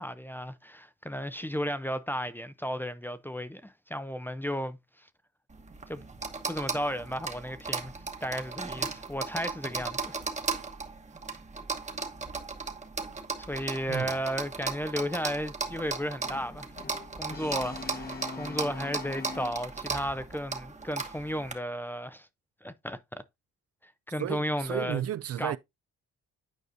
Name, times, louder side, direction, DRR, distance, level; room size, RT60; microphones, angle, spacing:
voice 1, 0.0-4.8 5.9-6.0 6.5-7.9 8.2-10.2 13.5-16.7 17.1-22.3 22.6-23.2 24.1-25.0 25.4-25.6, equal, 5° left, 0.5 m, -34 dB
sound 1, 5.5-21.5, right 4 dB, 25° right, 1.1 m, -36 dB
Brass instrument, 16.2-20.0, left 3 dB, 30° left, 1.0 m, -43 dB
voice 2, 24.2-25.6, right 11 dB, 55° right, 0.4 m, -33 dB
9.3 x 4.8 x 2.6 m
cardioid pair, 90°, 30 cm